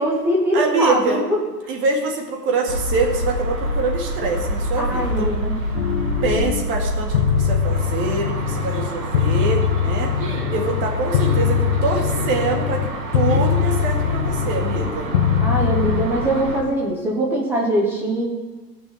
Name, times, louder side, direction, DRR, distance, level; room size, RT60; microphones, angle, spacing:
voice 1, 0.0-1.4 4.8-5.6 15.4-18.3, right 1 dB, 5° right, -3 dB, 0.6 m, -22 dB
voice 2, 0.5-1.2 1.7-5.3 6.2-15.1, right 3 dB, 25° right, 2 dB, 2.0 m, -25 dB
sound 1, 2.7-16.6, equal, 55° right, 3.4 m, -27 dB
sound 2, 5.7-6.6 7.1-8.9 9.1-12.9 13.1-14.9 15.1-16.1, left 8 dB, 35° left, 0.6 m, -21 dB
15.5 x 6.4 x 8.0 m, 1.2 s
hypercardioid pair, 145°, 49 cm